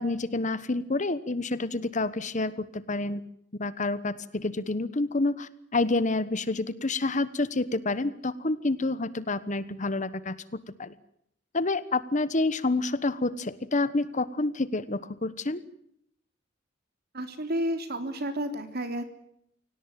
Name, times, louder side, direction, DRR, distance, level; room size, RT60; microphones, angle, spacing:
voice 1, 0.0-3.2 3.5-10.4 10.8-10.9 11.5-15.6, left 2 dB, 40° left, 15 dB, 1.2 m, -28 dB
voice 2, 17.1-19.0, equal, 55° right, 8 dB, 3.4 m, -31 dB
25.0 x 18.0 x 9.1 m, 0.72 s
head